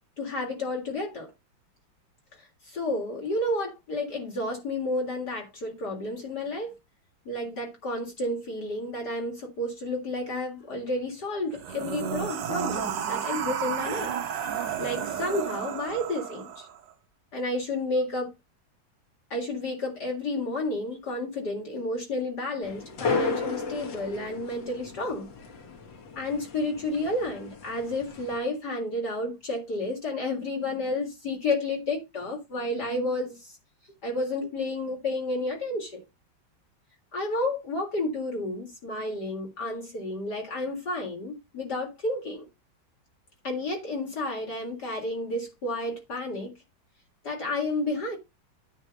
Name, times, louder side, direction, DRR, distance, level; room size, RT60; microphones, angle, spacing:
voice 1, 0.2-1.3 2.4-6.8 7.3-14.1 14.8-16.7 17.3-18.3 19.3-25.3 26.2-33.5 34.0-36.0 37.1-42.5 43.4-46.5 47.2-48.2, left 2 dB, 60° left, 2.6 m, -31 dB
sound 1, 11.5-16.8, right 8 dB, 70° right, 1.5 m, -32 dB
sound 2, 22.6-28.4, left 4 dB, 75° left, 2.1 m, -34 dB
9.9 x 3.3 x 6.6 m
omnidirectional pair, 2.1 m